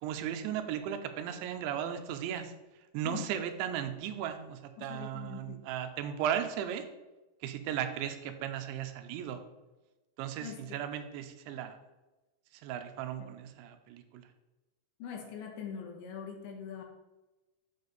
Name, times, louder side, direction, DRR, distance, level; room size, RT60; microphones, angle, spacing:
voice 1, 0.0-2.5 2.9-6.8 7.4-9.4 10.2-11.7 12.6-14.2, right 9 dB, 85° right, 8 dB, 3.0 m, -36 dB
voice 2, 4.8-5.6 10.4-10.8 13.2-13.3 15.0-16.8, left 7 dB, 80° left, 3 dB, 3.4 m, -43 dB
7.8 x 6.8 x 4.0 m, 1.1 s
omnidirectional pair, 5.2 m